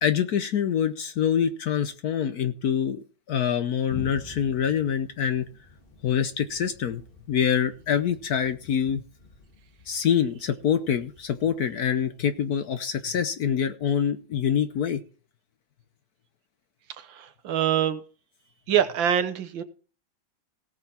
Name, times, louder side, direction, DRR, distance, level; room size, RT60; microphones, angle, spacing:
voice 1, 0.0-5.5 6.0-7.0 7.3-9.0 9.9-15.0, left 8 dB, 60° left, 10 dB, 1.1 m, -25 dB
Thunder, 3.9-13.3, left 4 dB, 25° left, 2.7 m, -47 dB
voice 2, 17.0-18.0 18.7-19.6, right 9 dB, 75° right, 11 dB, 1.7 m, -25 dB
18.0 x 6.6 x 4.3 m, 0.38 s
omnidirectional pair, 2.1 m